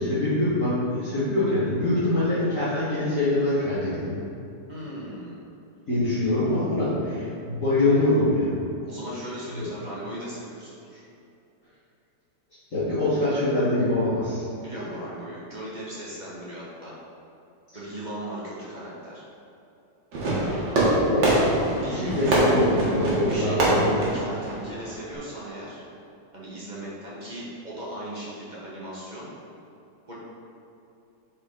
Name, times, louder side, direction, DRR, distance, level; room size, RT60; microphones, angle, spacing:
voice 1, 0.0-4.2 5.9-8.6 9.5-9.7 12.7-14.4 21.0-24.0, left 1 dB, 45° left, -14 dB, 2.0 m, -24 dB
voice 2, 4.7-5.4 8.8-11.0 14.6-16.9 17.7-19.2 21.8-22.7 23.3-23.8 24.1-25.8 26.3-29.3 30.1-30.2, right 1 dB, 25° right, -8 dB, 1.4 m, -37 dB
Fireworks, 20.1-25.2, right 1 dB, 65° right, 2.0 m, -24 dB
7.4 x 4.4 x 3.9 m, 2.7 s
omnidirectional pair, 2.0 m